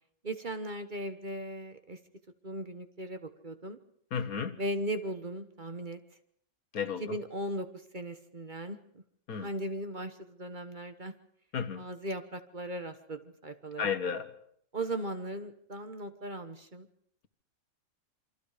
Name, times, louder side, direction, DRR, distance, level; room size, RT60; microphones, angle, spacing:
voice 1, 0.2-2.0 2.4-3.8 4.6-6.0 7.0-7.7 7.9-8.8 9.4-11.1 11.8-13.9 14.7-16.9, right 1 dB, 35° right, 1.3 m, -37 dB
voice 2, 4.1-4.6 6.7-7.2 9.3-9.5 11.5-11.8 13.8-14.3, left 6 dB, 75° left, 1.8 m, -33 dB
27.5 x 24.5 x 5.0 m
omnidirectional pair, 1.5 m